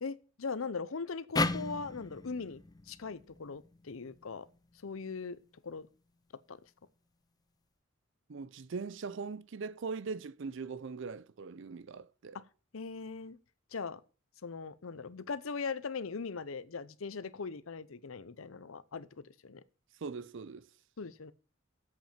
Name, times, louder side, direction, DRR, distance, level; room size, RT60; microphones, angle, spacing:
voice 1, 0.0-2.6 2.9-4.5 4.8-5.4 5.6-5.9 6.5-6.6 12.3-12.4 12.7-13.4 13.7-14.0 14.4-19.6 21.0-21.3, left 4 dB, 80° left, 0.7 m, -40 dB
sound 1, 1.4-4.6, left 3 dB, 20° left, 0.5 m, -36 dB
voice 2, 8.3-12.4 20.0-20.7, right 4 dB, 65° right, 0.5 m, -41 dB
8.1 x 7.4 x 7.2 m
head